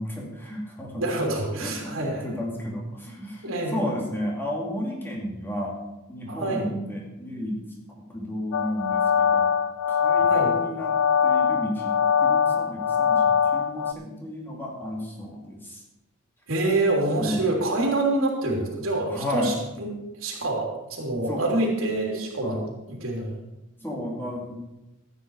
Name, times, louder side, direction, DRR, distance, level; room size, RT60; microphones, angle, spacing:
voice 1, 0.0-1.0 1.6-5.8 6.1-7.6 8.1-9.5 9.9-15.8 17.2-17.5 19.1-19.5 21.3-21.5 22.4-22.7 23.8-24.5, left 1 dB, 10° left, -2 dB, 2.7 m, -33 dB
voice 2, 0.9-2.3 3.4-3.9 6.3-6.7 10.3-10.5 16.5-19.9 20.2-22.6 22.9-23.4, right 2 dB, 80° right, -1 dB, 3.2 m, -26 dB
sound 1, 8.5-13.9, left 7 dB, 75° left, 0.4 m, -22 dB
13.5 x 9.3 x 4.9 m, 0.98 s
head